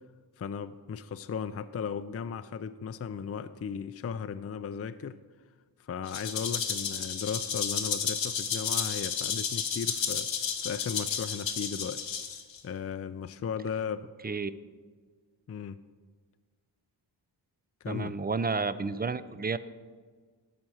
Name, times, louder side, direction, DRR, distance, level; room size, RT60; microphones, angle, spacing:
voice 1, 0.4-5.2 5.8-10.3 10.6-12.0 12.6-14.1 15.5-15.8 17.8-18.1, left 6 dB, 35° left, 11 dB, 0.4 m, -36 dB
Rattle (instrument), 6.1-12.6, left 7 dB, 80° left, 1.1 m, -32 dB
voice 2, 17.9-19.6, right 4 dB, 20° right, 15 dB, 0.4 m, -31 dB
12.5 x 4.3 x 7.7 m, 1.5 s
cardioid pair, 55°, 45 cm